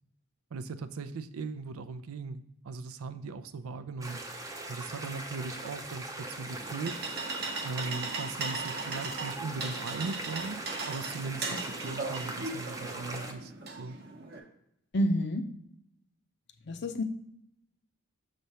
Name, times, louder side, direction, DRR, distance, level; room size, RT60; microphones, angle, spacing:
voice 1, 0.5-4.2 4.7-7.0 7.6-13.5 13.8-14.0, right 4 dB, 85° right, 11 dB, 0.5 m, -39 dB
sound 1, 4.0-13.3, right 2 dB, 15° right, 0.5 m, -41 dB
sound 2, 6.4-14.4, right 3 dB, 45° right, 0.9 m, -38 dB
voice 2, 14.9-15.5 16.7-17.0, equal, 50° left, 7 dB, 0.6 m, -28 dB
6.6 x 3.2 x 5.5 m, 0.75 s
head